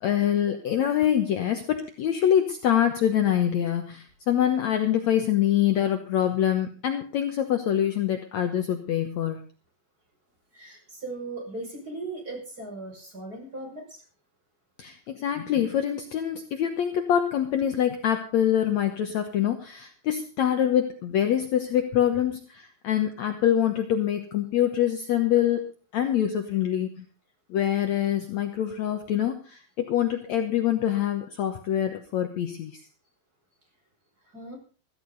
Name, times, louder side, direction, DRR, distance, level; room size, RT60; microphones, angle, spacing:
voice 1, 0.0-9.4 14.8-25.7 25.9-27.0 27.5-32.7, left 10 dB, 65° left, 6 dB, 2.1 m, -25 dB
voice 2, 10.5-14.0 34.3-34.5, right 2 dB, 25° right, 0 dB, 6.6 m, -38 dB
15.5 x 14.5 x 4.0 m, 0.38 s
omnidirectional pair, 4.0 m